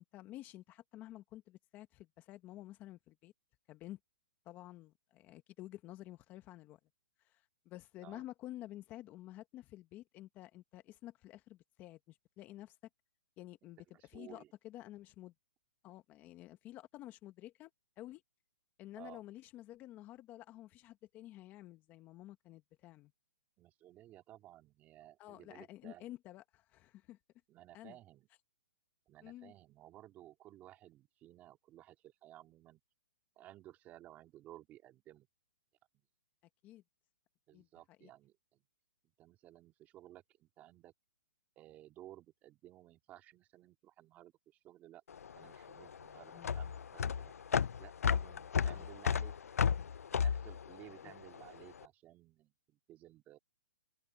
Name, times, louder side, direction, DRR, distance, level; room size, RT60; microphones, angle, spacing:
voice 1, 0.0-3.3 3.7-4.0 4.4-6.8 7.2-12.8 13.4-15.3 15.8-17.7 18.0-18.2 18.8-23.1 25.2-27.2 27.7-28.0 29.2-29.5 36.6-36.8 37.5-37.7 38.0-38.1 46.3-46.6 48.7-48.9 51.0-51.1, left 15 dB, 20° left, 1.4 m, -51 dB
voice 2, 13.9-14.5 19.0-19.2 23.6-26.0 27.5-28.3 29.1-32.8 33.4-35.3 37.5-38.6 39.2-40.9 41.6-45.0 45.3-47.3 47.8-49.3 50.1-53.4, right 14 dB, 20° right, 2.4 m, -57 dB
sound 1, 45.1-51.6, left 7 dB, 90° left, 0.5 m, -33 dB
hypercardioid pair, 150°, 8 cm